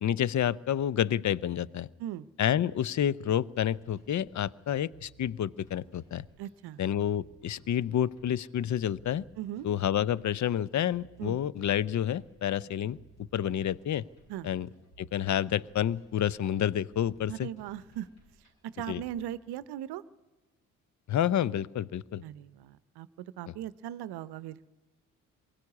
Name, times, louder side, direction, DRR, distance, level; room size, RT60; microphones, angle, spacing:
voice 1, 0.0-1.9 2.4-6.2 6.8-9.2 9.6-13.0 13.3-14.0 14.4-14.7 15.0-17.5 18.9-19.0 21.1-22.2 23.5-23.6, left 10 dB, 45° left, 23 dB, 0.7 m, -29 dB
sound 1, 3.2-19.2, right 1 dB, 65° left, 7.6 m, -59 dB
voice 2, 6.4-6.8 9.4-9.7 11.2-11.4 14.3-14.5 17.3-18.1 18.7-20.0 22.2-24.6, right 12 dB, 70° right, 18 dB, 0.8 m, -39 dB
22.0 x 16.0 x 9.7 m, 1.2 s
hypercardioid pair, 45°, 41 cm